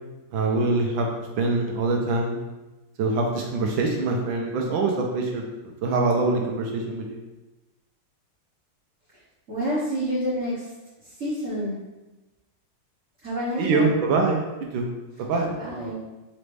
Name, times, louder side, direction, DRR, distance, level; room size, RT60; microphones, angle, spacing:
voice 1, 0.3-1.1 1.4-2.4 3.0-5.4 5.8-7.2 13.6-14.4 14.7-14.9 15.3-15.5, right 3 dB, 80° right, 1 dB, 1.3 m, -24 dB
voice 2, 9.5-10.7 11.0-11.8 13.2-14.0 15.4-16.0, equal, 45° right, -10 dB, 1.3 m, -28 dB
5.1 x 3.1 x 3.3 m, 1.1 s
omnidirectional pair, 2.3 m